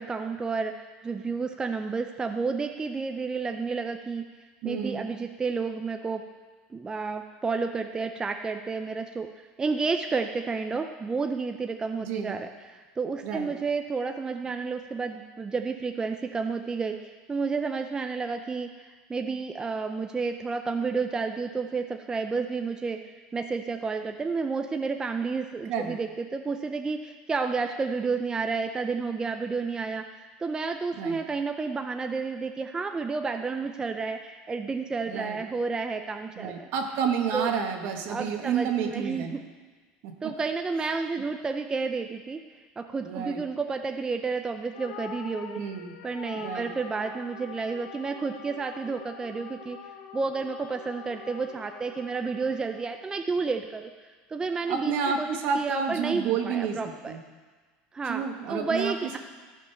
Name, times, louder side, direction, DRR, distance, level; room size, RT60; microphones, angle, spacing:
voice 1, 0.0-4.2 4.6-6.2 6.7-23.0 23.3-36.7 37.3-37.5 38.1-39.4 40.2-42.4 42.8-45.6 46.0-49.8 50.1-53.9 54.3-55.3 55.5-57.2 57.9-59.2, right 4 dB, 20° right, 6 dB, 0.5 m, -31 dB
voice 2, 4.6-5.1 12.0-12.4 13.2-13.5 25.7-25.9 30.9-31.2 35.1-35.4 36.4-39.4 40.0-40.1 43.0-43.4 45.5-45.9 46.3-46.7 54.7-57.2 58.1-59.2, right 6 dB, 65° right, 4 dB, 1.4 m, -30 dB
sound 1, 44.7-53.3, left 8 dB, 75° left, 0.9 m, -45 dB
14.0 x 5.2 x 5.7 m, 1.4 s
supercardioid pair, 115°, 4 cm